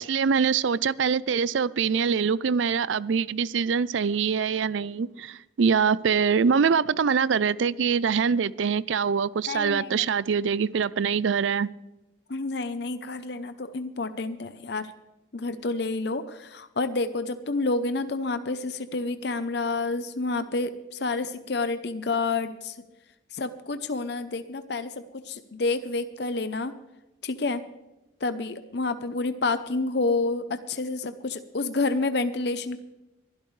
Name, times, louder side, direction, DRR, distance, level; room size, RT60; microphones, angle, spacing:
voice 1, 0.0-11.7, right 6 dB, 80° right, 20 dB, 0.4 m, -24 dB
voice 2, 9.5-10.1 12.3-14.9 15.3-22.8 23.3-26.7 27.2-27.6 28.2-32.8, left 3 dB, 60° left, 11 dB, 0.7 m, -29 dB
22.0 x 12.0 x 3.3 m, 0.99 s
head